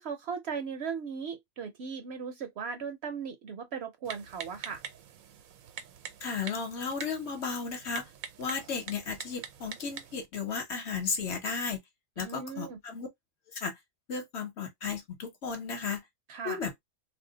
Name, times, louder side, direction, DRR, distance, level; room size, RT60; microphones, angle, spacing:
voice 1, 0.0-4.8 12.2-12.8 16.3-16.6, right 6 dB, 65° right, 0.7 m, -37 dB
Typing, 4.0-10.3, right 8 dB, 90° right, 1.0 m, -45 dB
voice 2, 6.2-8.0 8.4-11.8 12.2-13.1 13.5-13.8 14.1-16.0 16.4-16.8, left 5 dB, 60° left, 1.1 m, -34 dB
2.6 x 2.1 x 3.7 m
omnidirectional pair, 1.4 m